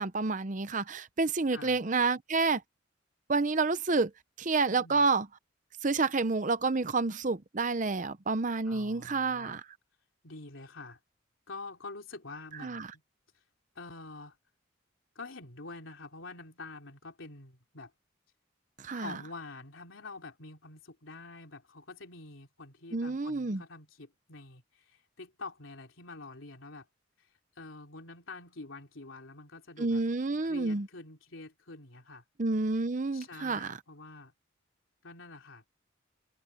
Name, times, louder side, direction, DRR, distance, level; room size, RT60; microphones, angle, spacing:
voice 1, 0.0-2.6 3.3-4.1 4.4-5.3 5.8-9.6 12.6-12.9 18.8-19.1 22.9-23.6 29.8-30.9 32.4-33.8, right 3 dB, 40° right, 0.7 m, -29 dB
voice 2, 4.7-5.0 8.6-9.6 10.2-11.0 11.5-12.9 13.7-14.4 15.1-17.9 18.9-26.9 27.2-30.0 30.5-32.2 33.1-34.3 35.0-35.7, left 3 dB, 80° left, 3.3 m, -46 dB
head